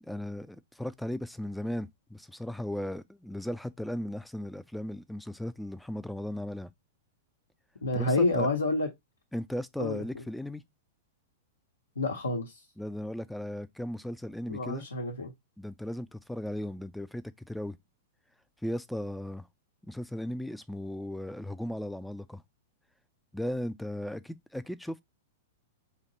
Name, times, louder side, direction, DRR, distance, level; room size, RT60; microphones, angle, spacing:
voice 1, 0.0-6.7 7.9-8.5 9.3-10.6 12.8-14.9 15.6-17.8 18.6-19.5 19.8-22.4 23.3-25.0, left 1 dB, ahead, 0.4 m, -36 dB
voice 2, 7.8-8.9 9.8-10.0 12.0-12.5 14.5-15.3, left 2 dB, 80° left, 1.0 m, -28 dB
4.4 x 2.8 x 3.9 m
figure-of-eight pair, 105°, 0 cm